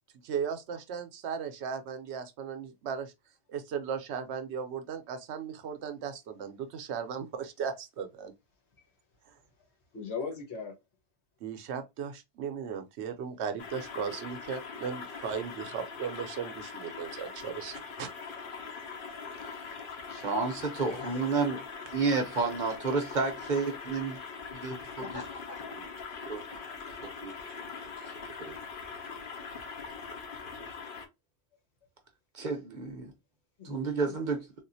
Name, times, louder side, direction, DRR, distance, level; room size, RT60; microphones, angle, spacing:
voice 1, 0.2-3.1 3.5-8.3 9.3-9.4 11.4-18.1, right 7 dB, 75° right, 0.9 m, -37 dB
voice 2, 9.9-10.7 20.9-21.3 25.0-25.6 33.6-33.7 34.0-34.1, left 5 dB, 70° left, 1.5 m, -39 dB
sound 1, 13.6-31.1, left 5 dB, 55° left, 0.8 m, -42 dB
voice 3, 20.1-21.6 21.9-24.2 24.5-25.2 26.2-26.4 27.0-27.3 28.4-28.5 32.3-33.1 33.6-34.5, right 4 dB, 45° right, 0.8 m, -31 dB
3.6 x 2.4 x 2.6 m
omnidirectional pair, 1.2 m